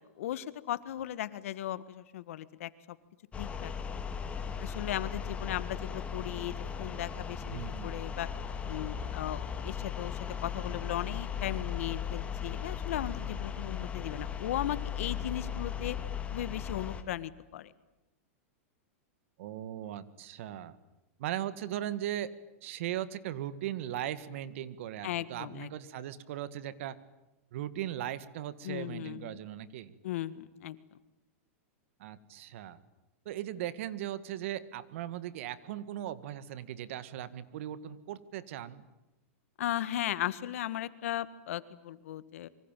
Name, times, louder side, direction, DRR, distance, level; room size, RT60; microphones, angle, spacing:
voice 1, 0.2-3.0 3.4-3.7 4.6-8.3 8.6-16.0 16.3-17.7 25.0-25.7 28.6-29.4 30.0-30.8 39.6-42.5, left 12 dB, 70° left, 15 dB, 1.7 m, -37 dB
sound 1, 3.3-17.0, left 7 dB, 15° left, 2.4 m, -37 dB
voice 2, 7.5-7.9 19.4-20.8 21.2-22.3 22.6-27.0 27.5-29.9 32.0-32.8 33.3-38.9, right 12 dB, 65° right, 15 dB, 1.8 m, -38 dB
26.0 x 24.0 x 9.2 m, 0.96 s
supercardioid pair, 145°, 8 cm